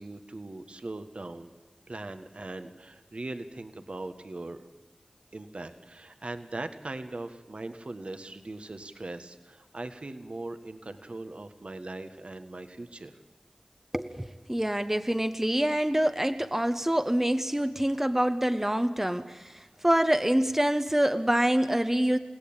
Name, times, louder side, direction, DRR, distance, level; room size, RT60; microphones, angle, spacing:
voice 1, 0.0-1.5 1.9-4.6 5.3-13.2, right 2 dB, 60° right, 8 dB, 1.5 m, -40 dB
voice 2, 13.9-22.2, right 1 dB, 15° right, 10 dB, 1.0 m, -26 dB
29.0 x 17.0 x 8.9 m, 1.2 s
wide cardioid pair, 45°, 2 cm